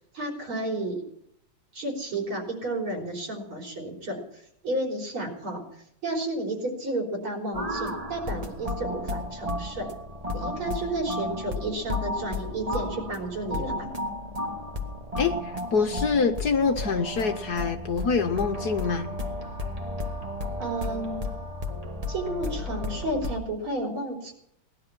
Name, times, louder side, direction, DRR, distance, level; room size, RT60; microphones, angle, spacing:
voice 1, 0.1-1.1 1.7-4.2 4.6-5.6 6.0-9.9 10.3-13.9 20.6-21.3 22.1-24.3, right 1 dB, 75° right, 1 dB, 4.7 m, -32 dB
sound 1, 7.5-23.4, left 1 dB, 20° right, 1.3 m, -33 dB
voice 2, 15.2-19.1, left 5 dB, 55° left, 7 dB, 1.3 m, -25 dB
18.5 x 11.5 x 6.0 m, 0.72 s
omnidirectional pair, 2.4 m